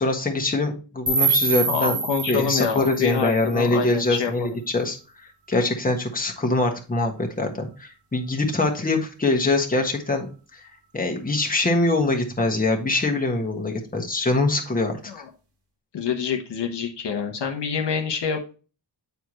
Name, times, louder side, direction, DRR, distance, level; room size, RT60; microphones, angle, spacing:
voice 1, 0.0-2.0 2.3-5.0 5.5-10.6 10.9-15.0, left 2 dB, 20° left, 2 dB, 1.4 m, -23 dB
sound 1, 1.1-4.1, right 4 dB, 65° right, 2.2 m, -26 dB
voice 2, 1.7-4.6 15.1-15.3 15.9-18.6, left 7 dB, 70° left, 3 dB, 1.2 m, -27 dB
8.1 x 4.6 x 3.0 m, 0.34 s
cardioid pair, 85°, 44 cm